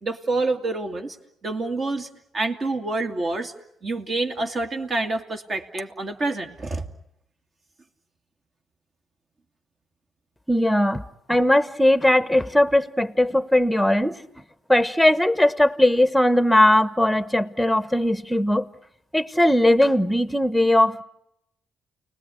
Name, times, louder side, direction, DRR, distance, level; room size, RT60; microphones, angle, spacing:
voice 1, 0.0-1.2 1.4-2.1 2.3-3.5 3.8-6.9, right 2 dB, 40° right, 2.5 m, -27 dB
voice 2, 10.5-14.2 14.7-18.7 19.1-21.0, left 1 dB, 5° left, 1.2 m, -19 dB
29.5 x 20.0 x 9.9 m
cardioid pair, 90°, 0 cm